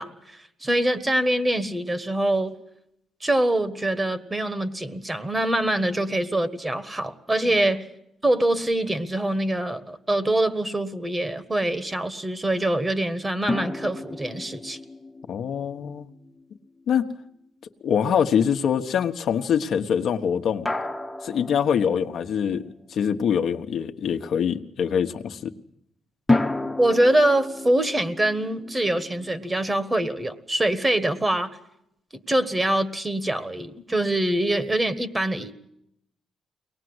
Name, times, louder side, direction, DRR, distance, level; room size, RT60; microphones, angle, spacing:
voice 1, 0.0-2.5 3.2-7.8 8.2-14.8 26.8-31.6 32.1-35.5, right 1 dB, 15° right, 12 dB, 1.6 m, -24 dB
sound 1, 13.5-16.8 20.7-22.6 26.3-29.4, left 2 dB, 10° left, 1.1 m, -31 dB
voice 2, 15.3-16.1 16.9-17.1 17.8-20.7 21.2-25.5, left 8 dB, 65° left, 5 dB, 1.2 m, -24 dB
23.0 x 19.5 x 8.0 m, 0.78 s
cardioid pair, 90°, 0 cm